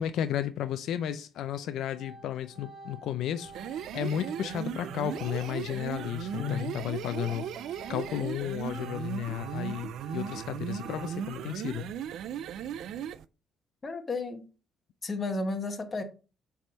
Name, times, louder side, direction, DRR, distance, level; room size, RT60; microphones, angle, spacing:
voice 1, 0.0-3.5 3.9-11.9, left 10 dB, 75° left, 0.4 m, -33 dB
Organ, 1.4-1.6 1.9-8.3 8.6-11.5, right 2 dB, 20° right, 2.5 m, -49 dB
sound 1, 3.4-13.2, right 9 dB, 70° right, 0.3 m, -37 dB
voice 2, 6.4-6.7 13.8-14.5 15.0-16.0, left 3 dB, 25° left, 1.1 m, -33 dB
7.3 x 3.5 x 4.0 m
cardioid pair, 135°, 0 cm